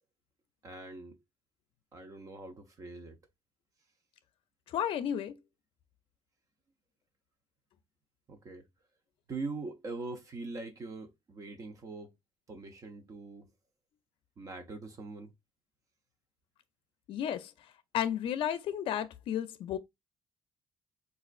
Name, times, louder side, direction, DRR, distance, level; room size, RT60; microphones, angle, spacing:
voice 1, 0.6-1.2 1.9-3.2 8.3-8.7 9.3-12.2 12.5-13.5 14.4-15.3, right 3 dB, 40° right, 0.7 m, -42 dB
voice 2, 4.7-5.4 17.1-17.5 17.9-19.8, left 10 dB, 75° left, 0.4 m, -32 dB
4.1 x 2.4 x 2.4 m
cardioid pair, 135°, 9 cm